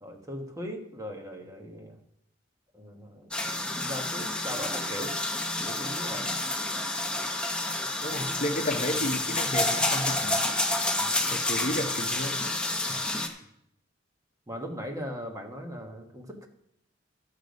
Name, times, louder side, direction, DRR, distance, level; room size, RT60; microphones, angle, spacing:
voice 1, 0.0-2.0 2.7-3.3 3.8-5.2 5.6-6.3 11.0-11.3 14.5-16.5, equal, 20° right, 2 dB, 1.4 m, -39 dB
sound 1, 3.3-13.3, left 2 dB, 5° left, 1.0 m, -29 dB
voice 2, 8.0-10.4 11.3-12.5 13.0-13.4, left 1 dB, 45° left, 5 dB, 1.0 m, -32 dB
12.5 x 6.7 x 5.3 m, 0.73 s
head